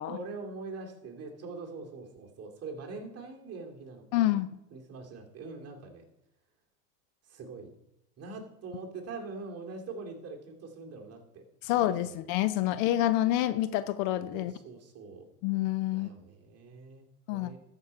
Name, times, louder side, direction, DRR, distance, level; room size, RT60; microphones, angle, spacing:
voice 1, 0.1-6.0 7.3-7.7 8.2-12.2 12.7-12.8 14.3-15.3 15.9-17.6, right 3 dB, 30° right, 0 dB, 2.5 m, -43 dB
voice 2, 4.1-4.5 11.6-14.5 15.4-16.1 17.3-17.5, left 14 dB, 55° left, 15 dB, 0.7 m, -27 dB
13.5 x 5.5 x 4.6 m, 0.85 s
supercardioid pair, 120°, 49 cm